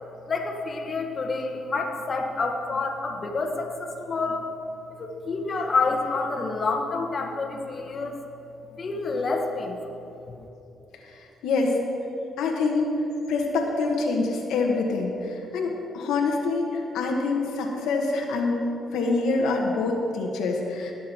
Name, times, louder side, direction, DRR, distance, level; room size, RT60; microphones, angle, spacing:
voice 1, 0.3-4.5 4.9-8.2 8.8-10.0 10.4-10.5, left 3 dB, 40° left, 1 dB, 1.4 m, -28 dB
voice 2, 11.0-11.8 12.4-12.9 13.3-18.6 18.9-20.9, left 3 dB, 85° left, 0 dB, 1.5 m, -26 dB
18.5 x 7.3 x 4.5 m, 2.9 s
cardioid pair, 90°, 0 cm